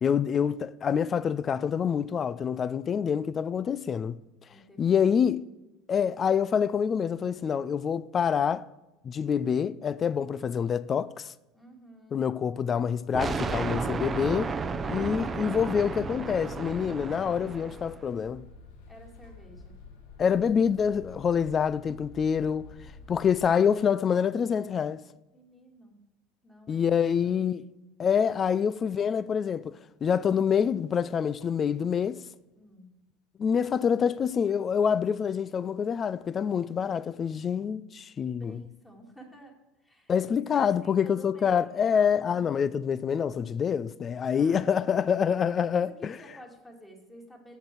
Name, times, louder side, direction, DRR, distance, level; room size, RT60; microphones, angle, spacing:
voice 1, 0.0-4.2 4.8-5.5 5.9-8.7 9.0-11.3 12.1-14.5 14.9-18.4 20.2-22.7 23.1-25.0 26.7-27.7 28.0-32.2 33.4-38.6 40.1-46.2, left 7 dB, 35° left, 0.4 m, -26 dB
voice 2, 4.5-4.8 11.5-12.3 18.9-19.8 25.3-26.0 26.4-27.3 32.5-32.9 38.2-39.6 39.8-40.1 40.5-42.5 44.3-45.1 45.8-47.6, equal, 10° left, 2.4 m, -51 dB
sound 1, 13.1-18.0, right 4 dB, 25° right, 0.6 m, -33 dB
sound 2, 15.9-23.5, left 3 dB, 65° left, 1.1 m, -49 dB
7.9 x 6.6 x 6.0 m
hypercardioid pair, 80°, 0 cm